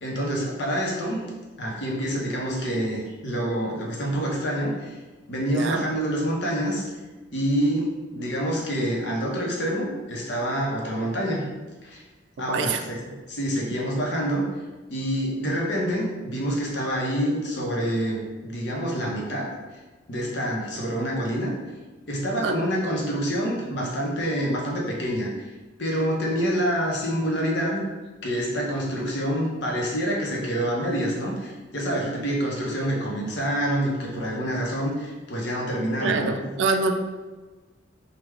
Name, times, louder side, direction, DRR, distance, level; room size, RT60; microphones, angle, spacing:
voice 1, 0.0-1.2 1.6-5.0 5.3-6.8 7.3-11.5 11.8-12.0 12.4-12.7 13.0-14.5 14.9-19.5 20.1-21.5 22.1-25.5 25.8-27.8 28.2-36.4, equal, 65° left, -2 dB, 0.8 m, -27 dB
voice 2, 12.5-12.8 22.4-22.6 36.0-36.9, right 4 dB, 75° right, 6 dB, 0.3 m, -25 dB
3.5 x 2.2 x 3.1 m, 1.3 s
head